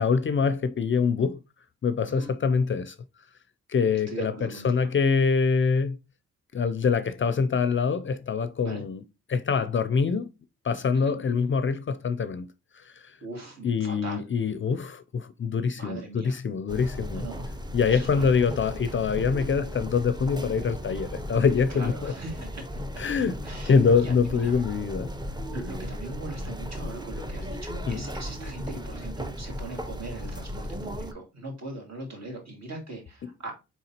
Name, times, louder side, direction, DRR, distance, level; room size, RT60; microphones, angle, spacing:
voice 1, 0.0-1.4 1.8-3.0 3.7-6.0 6.5-9.0 9.3-10.3 10.6-12.5 12.7-13.2 13.6-17.3 17.7-22.1 23.0-23.4 23.6-25.1 27.9-28.0, left 5 dB, 40° left, 0.4 m, -25 dB
voice 2, 4.1-4.9 8.6-8.8 10.9-11.2 13.2-14.3 15.7-16.4 17.1-17.5 17.9-18.3 21.7-22.8 23.4-24.6 25.5-33.6, right 2 dB, 55° right, 2.2 m, -40 dB
sound 1, 16.7-31.1, equal, 15° right, 0.6 m, -36 dB
4.6 x 3.8 x 2.8 m
cardioid pair, 55°, 31 cm